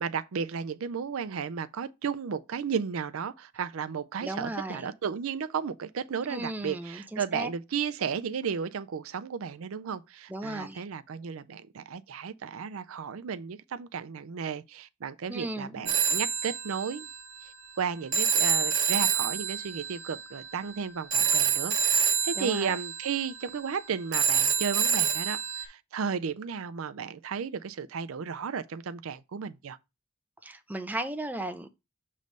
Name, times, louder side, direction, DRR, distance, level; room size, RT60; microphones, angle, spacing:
voice 1, 0.0-17.1 17.4-29.8, right 6 dB, 80° right, 0.5 m, -34 dB
voice 2, 4.2-4.9 6.3-7.5 10.3-10.8 15.3-15.9 22.4-22.8 30.4-31.7, right 1 dB, 10° right, 0.4 m, -36 dB
Telephone, 15.9-25.6, right 7 dB, 60° right, 1.0 m, -28 dB
6.6 x 3.2 x 5.2 m
head